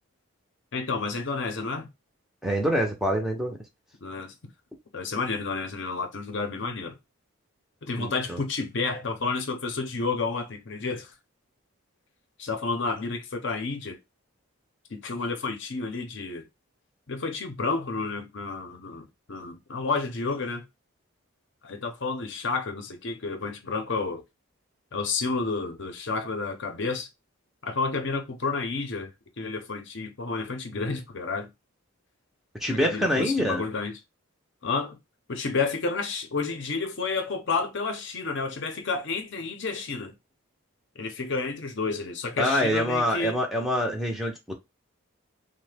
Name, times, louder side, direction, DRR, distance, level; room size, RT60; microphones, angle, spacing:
voice 1, 0.7-1.9 4.0-4.3 4.9-6.9 7.8-11.1 12.4-14.0 14.9-16.5 17.1-20.7 21.6-24.2 24.9-27.1 27.6-29.1 29.4-31.5 32.7-34.0 34.6-35.0 35.3-40.1 41.0-43.4, left 4 dB, 55° left, 0.6 m, -30 dB
voice 2, 2.4-3.6 8.0-8.4 32.6-33.6 42.4-44.3, equal, ahead, 0.5 m, -25 dB
3.1 x 2.1 x 3.3 m
head